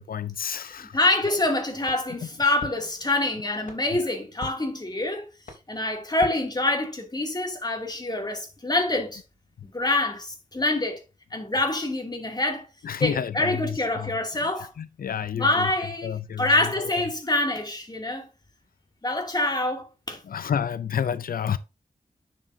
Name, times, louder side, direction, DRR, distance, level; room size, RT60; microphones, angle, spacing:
voice 1, 0.0-1.0 3.9-4.0 12.8-14.1 14.6-15.7 16.0-16.5 16.8-16.9 20.3-21.6, left 8 dB, 85° left, 0.4 m, -30 dB
voice 2, 0.9-5.3 5.7-9.2 9.7-11.0 11.3-12.7 13.0-14.7 15.3-18.3 19.0-20.2, left 2 dB, 30° left, 2.6 m, -26 dB
sound 1, 1.8-7.2, left 3 dB, 65° left, 3.3 m, -46 dB
9.7 x 7.2 x 2.7 m
wide cardioid pair, 90°, 15 cm